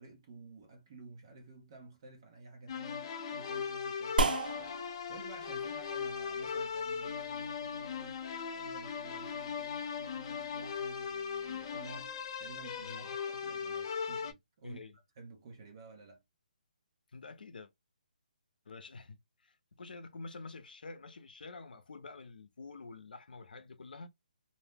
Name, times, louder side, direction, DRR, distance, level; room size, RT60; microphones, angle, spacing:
voice 1, 0.0-8.2 8.5-14.8 15.2-16.2, right 3 dB, 30° right, 0.8 m, -52 dB
sound 1, 2.7-14.3, left 6 dB, 30° left, 0.4 m, -38 dB
sound 2, 4.2-12.9, right 3 dB, 80° right, 0.5 m, -40 dB
voice 2, 14.6-14.9 17.1-17.7 18.7-24.1, left 3 dB, 90° left, 0.6 m, -48 dB
2.6 x 2.1 x 3.3 m
hypercardioid pair, 170°, 5 cm